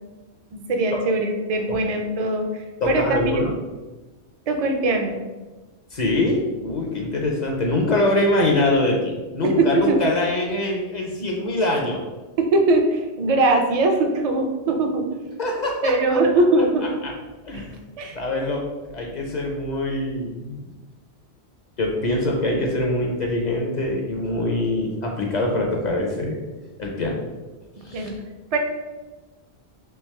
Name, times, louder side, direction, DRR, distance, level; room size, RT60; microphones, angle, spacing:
voice 1, 0.5-3.3 4.5-5.2 9.6-10.0 12.4-15.2 15.8-16.9 18.0-18.1 27.9-28.1 28.5-28.6, right 2 dB, 55° right, 3 dB, 0.4 m, -21 dB
voice 2, 2.8-3.6 5.9-12.0 15.4-16.2 17.0-17.1 17.4-17.8 18.1-18.6 18.9-20.7 21.8-26.4 26.8-27.2 27.8-28.1, left 1 dB, 50° left, 0 dB, 0.6 m, -24 dB
3.4 x 2.9 x 3.2 m, 1.2 s
omnidirectional pair, 1.1 m